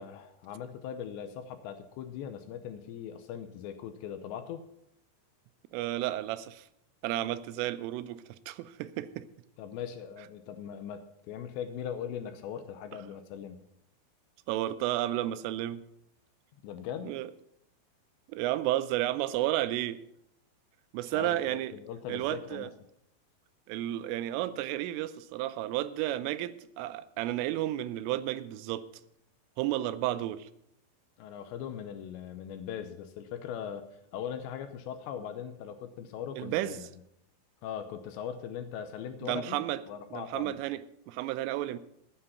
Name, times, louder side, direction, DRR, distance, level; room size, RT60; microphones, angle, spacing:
voice 1, 0.0-4.6 9.6-13.6 16.6-17.2 21.1-22.7 31.2-33.9 34.1-36.9 37.6-39.6 39.9-40.6, left 8 dB, 80° left, 9 dB, 2.7 m, -40 dB
voice 2, 5.7-6.7 7.0-9.3 14.5-15.8 17.0-17.3 18.3-20.0 20.9-21.7 22.1-22.7 23.7-28.9 29.6-30.5 36.4-36.8 39.2-39.8 40.1-41.8, right 14 dB, 85° right, 13 dB, 3.2 m, -32 dB
14.0 x 9.0 x 5.7 m, 0.76 s
omnidirectional pair, 5.7 m